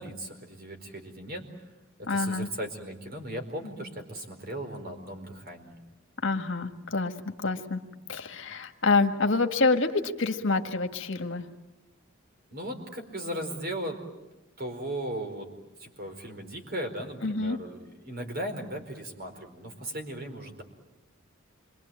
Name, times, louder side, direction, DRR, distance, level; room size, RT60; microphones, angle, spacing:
voice 1, 0.0-1.5 2.0-5.8 12.5-14.0 14.6-20.6, right 1 dB, 50° right, 4 dB, 4.6 m, -37 dB
voice 2, 2.1-2.5 6.2-7.1 7.4-7.8 8.1-11.4 17.2-17.6, left 3 dB, 65° left, 6 dB, 1.8 m, -27 dB
27.5 x 24.0 x 9.0 m, 1.0 s
head